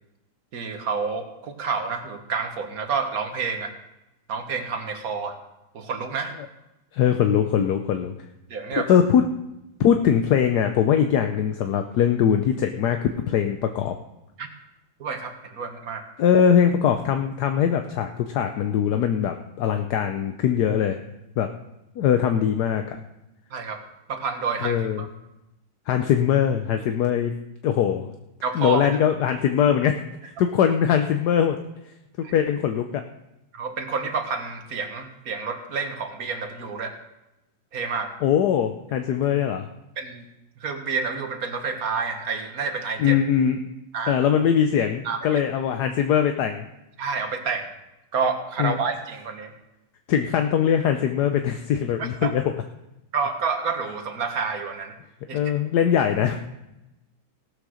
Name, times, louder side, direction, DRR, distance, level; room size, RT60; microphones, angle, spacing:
voice 1, 0.5-3.7 4.3-5.4 5.7-6.3 8.5-8.9 14.4-14.5 15.0-16.0 23.5-23.8 24.1-25.1 28.4-28.9 32.2-32.3 33.5-37.0 37.7-38.1 40.0-40.2 40.6-43.2 43.9-44.2 45.0-45.4 47.0-47.7 48.1-49.5 52.0-52.3 53.1-54.9 55.3-55.4, right 5 dB, 50° right, 5 dB, 1.6 m, -29 dB
voice 2, 6.9-8.1 8.8-9.2 9.8-13.9 16.2-21.0 21.4-21.5 22.0-23.0 24.6-25.0 25.9-27.3 27.6-28.1 28.5-30.0 30.2-31.6 32.3-32.9 38.2-39.7 43.0-43.6 44.1-46.7 48.6-48.8 50.1-52.4 55.3-56.4, left 8 dB, 65° left, 6 dB, 1.1 m, -21 dB
17.0 x 6.5 x 6.4 m, 0.93 s
omnidirectional pair, 2.2 m